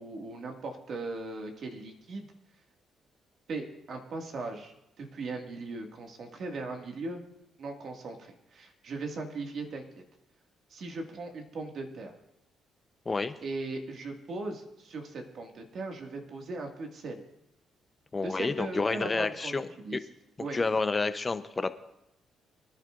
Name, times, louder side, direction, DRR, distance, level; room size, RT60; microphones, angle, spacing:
voice 1, 0.0-2.3 3.5-7.2 7.6-10.0 10.7-12.1 13.4-17.2 18.2-20.0 20.4-20.6, right 3 dB, 60° right, 2 dB, 2.0 m, -38 dB
voice 2, 18.1-19.7 19.9-20.0 20.5-21.8, left 3 dB, 25° left, 11 dB, 0.7 m, -29 dB
23.5 x 11.0 x 2.5 m, 0.85 s
cardioid pair, 90°, 0 cm